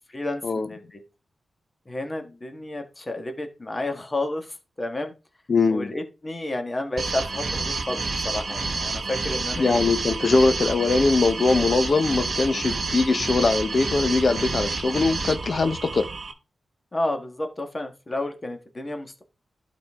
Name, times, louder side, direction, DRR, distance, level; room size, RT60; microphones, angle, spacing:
voice 1, 0.1-1.0 1.9-5.1 5.7-9.8 16.9-19.2, left 2 dB, 25° left, 1.5 m, -31 dB
voice 2, 5.5-5.9 9.6-16.1, left 3 dB, 50° left, 0.8 m, -21 dB
sound 1, 7.0-16.3, right 3 dB, 60° right, 1.2 m, -29 dB
12.0 x 4.0 x 3.6 m
wide cardioid pair, 90°, 0 cm